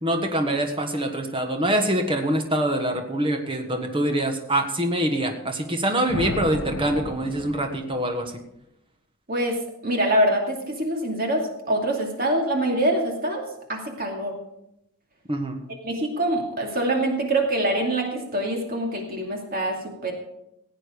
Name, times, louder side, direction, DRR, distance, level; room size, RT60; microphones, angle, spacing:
voice 1, 0.0-8.4 15.3-15.6, right 1 dB, 25° right, 4 dB, 1.4 m, -25 dB
sound 1, 6.1-8.3, left 2 dB, 85° left, 1.3 m, -33 dB
voice 2, 9.8-13.4 13.7-14.4 15.8-20.1, right 1 dB, 40° right, 1 dB, 2.5 m, -24 dB
16.0 x 8.9 x 5.1 m, 0.82 s
head